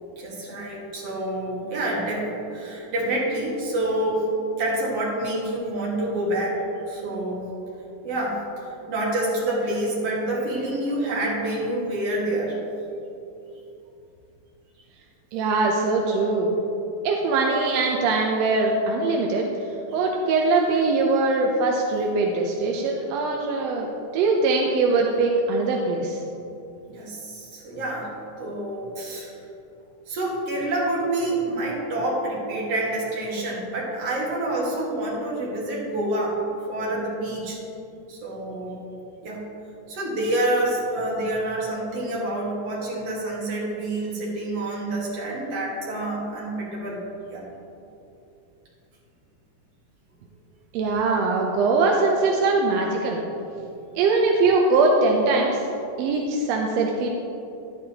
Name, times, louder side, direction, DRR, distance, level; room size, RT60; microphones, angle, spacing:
voice 1, 0.2-4.3 4.6-6.6 6.9-7.4 8.0-12.6 26.8-28.1 28.4-29.4 30.1-36.4 36.7-37.6 38.1-38.8 39.2-39.4 39.9-47.0 47.3-47.4, right 1 dB, 55° right, -5 dB, 2.7 m, -27 dB
voice 2, 15.3-16.6 17.0-19.5 19.9-23.9 24.1-26.2 50.7-53.2 54.0-55.7 56.0-57.1, right 3 dB, 75° right, 0 dB, 1.6 m, -22 dB
10.5 x 9.5 x 2.9 m, 2.8 s
omnidirectional pair, 3.4 m